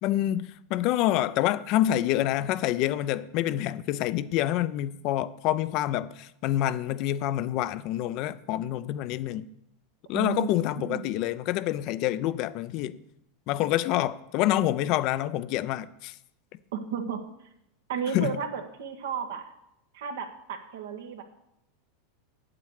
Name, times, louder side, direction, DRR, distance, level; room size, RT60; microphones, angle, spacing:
voice 1, 0.0-9.5 10.1-13.0 13.5-16.1 18.1-18.3, left 13 dB, 55° left, 0.6 m, -27 dB
voice 2, 10.1-10.5 10.8-11.1 16.7-17.2 17.9-19.5 19.9-21.2, right 7 dB, 75° right, 1.6 m, -33 dB
8.7 x 8.1 x 6.5 m
hypercardioid pair, 110°, 0 cm